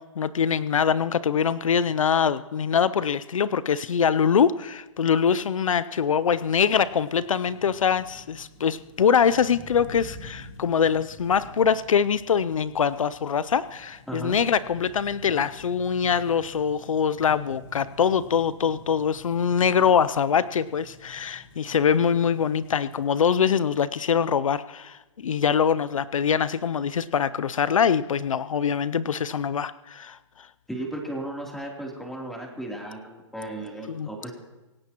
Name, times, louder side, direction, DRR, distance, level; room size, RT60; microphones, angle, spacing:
voice 1, 0.0-30.2 33.9-34.1, left 7 dB, 85° left, 16 dB, 0.6 m, -23 dB
sound 1, 6.2-23.1, left 1 dB, 40° left, 5.3 m, -48 dB
voice 2, 14.1-14.4 30.7-34.3, right 1 dB, ahead, -1 dB, 3.2 m, -35 dB
26.0 x 16.0 x 3.0 m, 1.1 s
hypercardioid pair, 140°, 17 cm